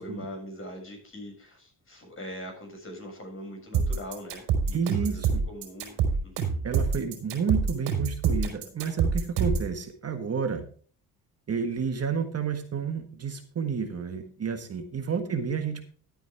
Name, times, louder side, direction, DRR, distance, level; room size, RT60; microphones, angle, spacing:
voice 1, 0.0-6.6 15.0-15.4, equal, 35° left, 2 dB, 6.7 m, -42 dB
sound 1, 3.7-9.7, right 5 dB, 85° right, 4.2 m, -26 dB
voice 2, 4.7-5.4 6.6-10.6 11.5-15.8, right 6 dB, 40° right, 6 dB, 1.5 m, -30 dB
12.5 x 9.0 x 3.5 m, 0.43 s
cardioid pair, 90°, 38 cm